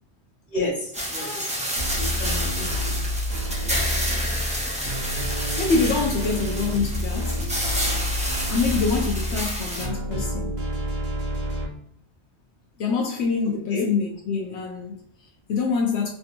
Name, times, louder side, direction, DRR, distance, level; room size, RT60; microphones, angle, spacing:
voice 1, 0.5-1.4 2.0-2.9 13.7-13.9, left 2 dB, 50° left, 1.4 m, -31 dB
sound 1, 0.9-9.9, equal, 10° right, 0.6 m, -29 dB
voice 2, 1.2-1.6 5.6-7.4 8.5-10.6 12.8-16.1, left 4 dB, 85° left, 0.9 m, -26 dB
sound 2, 1.8-11.6, equal, 45° right, 1.0 m, -28 dB
3.4 x 2.7 x 2.5 m
omnidirectional pair, 1.1 m